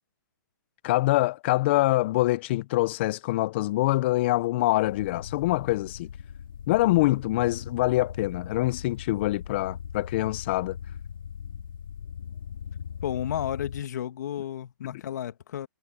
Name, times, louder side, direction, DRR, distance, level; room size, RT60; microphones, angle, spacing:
voice 1, 0.8-6.1 6.7-10.8, left 18 dB, 30° left, 0.4 m, -25 dB
sound 1, 4.8-13.8, left 8 dB, 70° left, 3.4 m, -39 dB
voice 2, 13.0-15.7, left 10 dB, 55° left, 2.0 m, -32 dB
hypercardioid pair, 155°, 11 cm